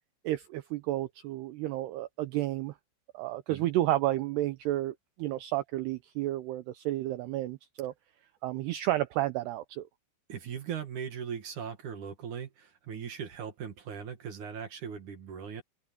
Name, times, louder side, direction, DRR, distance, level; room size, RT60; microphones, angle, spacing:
voice 1, 0.2-2.7 3.1-7.9 8.4-9.9, right 15 dB, 90° right, 2.3 m, -31 dB
voice 2, 10.3-15.6, right 7 dB, 55° right, 2.4 m, -39 dB
omnidirectional pair, 5.7 m